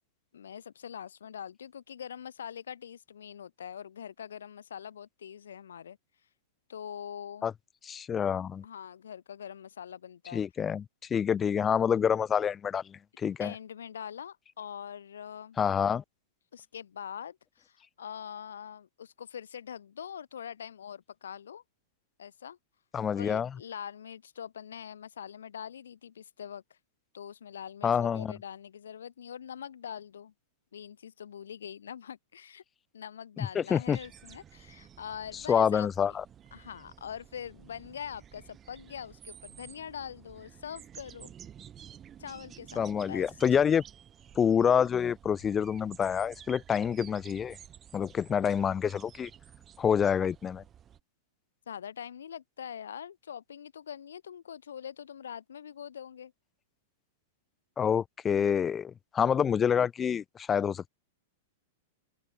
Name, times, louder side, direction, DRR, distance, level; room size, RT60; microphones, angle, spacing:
voice 1, 0.3-6.0 6.7-7.5 8.6-10.4 13.4-15.6 16.5-21.6 22.2-22.6 23.1-26.8 27.1-30.3 30.7-32.6 32.9-35.9 36.5-41.3 42.2-43.3 51.7-56.3, left 8 dB, 75° left, 4.9 m, -43 dB
voice 2, 7.8-8.6 10.3-10.8 11.1-13.5 15.6-16.0 22.9-23.5 27.8-28.3 33.4-34.0 35.3-36.2 42.8-43.8 44.4-47.6 47.9-49.3 49.8-50.6 57.8-60.9, left 7 dB, 20° left, 0.8 m, -27 dB
sound 1, 33.8-51.0, right 9 dB, 25° right, 5.7 m, -52 dB
figure-of-eight pair, 105°, 0 cm